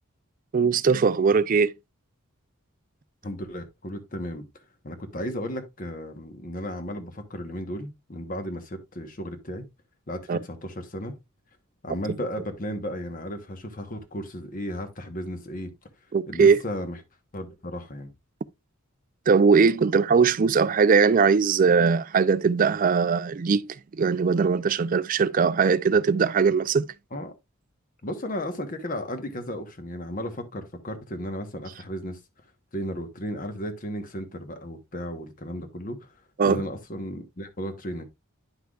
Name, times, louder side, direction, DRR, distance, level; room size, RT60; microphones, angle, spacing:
voice 1, 0.5-1.7 10.3-10.4 16.1-16.6 19.3-23.7 24.0-26.9 36.4-36.6, right 5 dB, 40° right, 0.4 m, -20 dB
voice 2, 3.2-4.5 4.8-9.7 10.1-11.1 11.8-15.7 16.3-17.0 17.3-18.1 27.1-27.3 28.0-32.2 32.7-36.1 36.4-38.0, equal, 40° left, 1.1 m, -34 dB
9.8 x 5.8 x 2.4 m
head